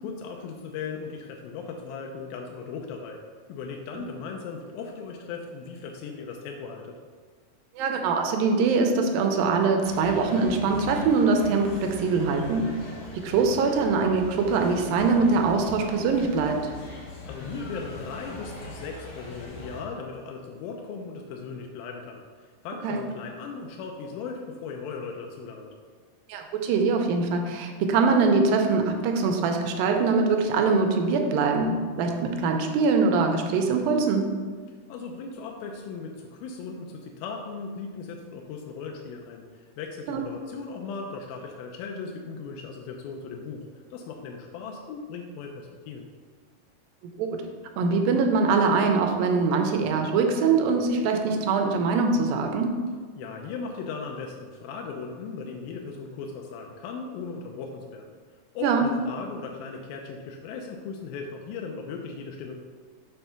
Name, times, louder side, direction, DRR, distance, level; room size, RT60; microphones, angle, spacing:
voice 1, 0.0-3.2 3.5-6.9 17.0-25.7 34.9-46.1 53.2-58.1 58.6-62.6, left 5 dB, 85° left, 1 dB, 2.5 m, -37 dB
voice 2, 7.8-12.7 13.2-16.6 22.8-23.0 26.3-34.3 40.1-40.2 47.2-47.4 47.8-52.7 58.6-58.9, right 4 dB, 85° right, 4 dB, 2.4 m, -23 dB
sound 1, 9.8-19.8, left 2 dB, 60° left, 1.4 m, -41 dB
5.5 x 5.4 x 5.8 m, 1.5 s
omnidirectional pair, 4.2 m